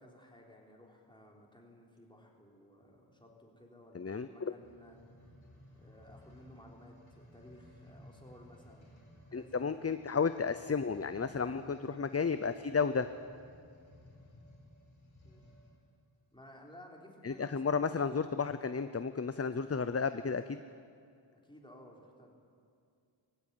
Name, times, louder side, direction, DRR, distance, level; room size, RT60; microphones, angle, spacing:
voice 1, 0.0-5.0 5.7-8.9 9.3-9.8 15.2-15.4 16.3-17.9 21.4-22.3, left 1 dB, 10° left, -1 dB, 3.8 m, -56 dB
voice 2, 3.9-4.5 9.3-13.1 17.2-20.6, left 5 dB, 30° left, 11 dB, 0.6 m, -33 dB
sound 1, 4.5-15.8 16.5-16.6, left 1 dB, 70° left, 4.7 m, -58 dB
19.5 x 16.0 x 9.3 m, 2.4 s
wide cardioid pair, 60°, 47 cm